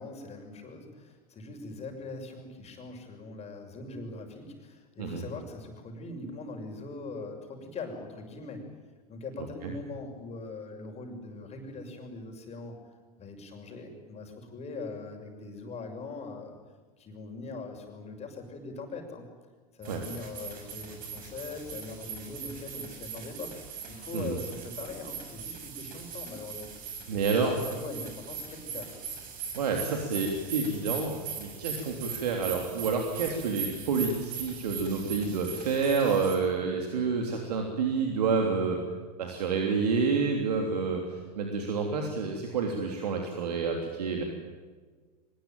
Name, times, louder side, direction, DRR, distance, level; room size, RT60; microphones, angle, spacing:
voice 1, 0.0-8.7 9.1-12.7 13.2-16.5 17.0-19.2 19.8-28.9, left 3 dB, 30° left, 3 dB, 6.5 m, -41 dB
sound 1, 19.8-36.4, right 6 dB, 45° right, 6.8 m, -40 dB
voice 2, 27.1-27.5 29.5-38.8 39.2-44.2, right 5 dB, 75° right, 2 dB, 3.3 m, -29 dB
24.5 x 21.0 x 9.2 m, 1.4 s
hypercardioid pair, 90°, 20 cm